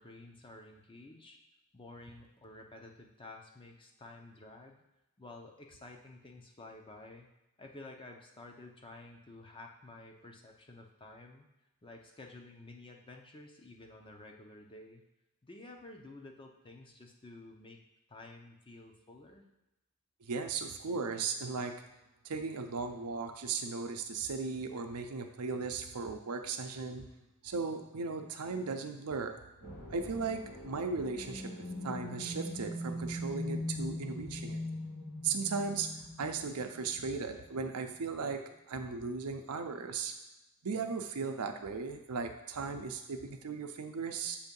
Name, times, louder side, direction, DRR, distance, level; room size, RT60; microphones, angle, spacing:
voice 1, 0.0-1.4 1.7-4.8 5.2-7.3 7.6-11.5 11.8-15.0 15.4-17.8 18.1-19.5, left 2 dB, 25° left, 2 dB, 0.7 m, -51 dB
voice 2, 20.2-21.7 22.2-27.0 27.4-29.4 29.9-31.5 31.8-34.6 35.2-35.9 36.2-38.4 38.7-40.1 40.6-44.4, right 4 dB, 85° right, 6 dB, 0.6 m, -37 dB
sound 1, 29.6-37.3, left 1 dB, 45° left, 1.9 m, -41 dB
7.1 x 2.7 x 5.3 m, 0.95 s
head